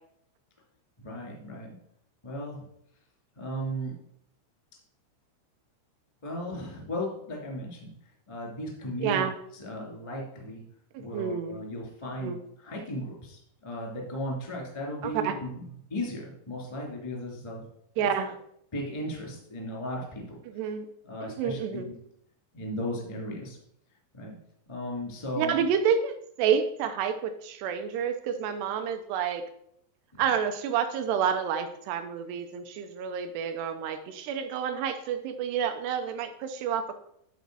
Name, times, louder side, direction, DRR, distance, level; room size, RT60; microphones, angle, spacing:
voice 1, 1.0-1.7 2.2-2.6 3.3-3.9 6.2-7.9 8.3-9.2 9.5-10.6 11.0-17.7 18.0-18.1 18.7-20.4 21.0-21.8 22.5-23.6 24.1-24.4 24.7-25.5 30.1-30.2, equal, 20° left, -1 dB, 0.7 m, -36 dB
voice 2, 9.0-9.3 10.9-11.6 12.2-12.4 15.0-15.4 18.0-18.3 20.5-20.9 21.2-21.9 25.4-29.4 30.2-37.0, right 7 dB, 80° right, 7 dB, 2.4 m, -29 dB
10.5 x 4.1 x 6.1 m, 0.72 s
omnidirectional pair, 5.3 m